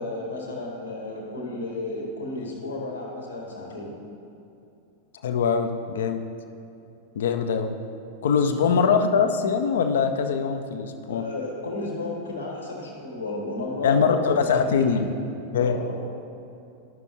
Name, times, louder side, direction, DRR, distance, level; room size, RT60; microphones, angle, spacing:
voice 1, 0.0-3.9 8.3-8.5 11.1-15.1 15.6-16.0, left 2 dB, 75° left, -2 dB, 1.9 m, -33 dB
voice 2, 5.2-6.2 7.2-7.7 8.2-11.2 13.8-15.1 15.5-15.7, left 6 dB, 60° left, 7 dB, 0.5 m, -22 dB
12.5 x 6.0 x 2.9 m, 2.7 s
figure-of-eight pair, 90°, 0 cm